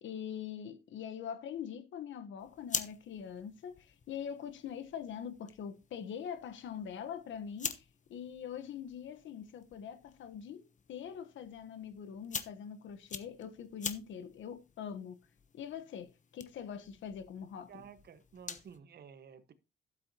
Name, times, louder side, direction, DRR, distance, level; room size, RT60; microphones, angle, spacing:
voice 1, 0.0-7.8 8.1-15.2 15.5-17.8, left 8 dB, 70° left, 1.1 m, -43 dB
sound 1, 2.4-18.8, left 6 dB, 40° left, 1.1 m, -46 dB
voice 2, 17.7-19.5, right 7 dB, 55° right, 1.3 m, -53 dB
12.0 x 7.7 x 2.9 m
cardioid pair, 90°, 20 cm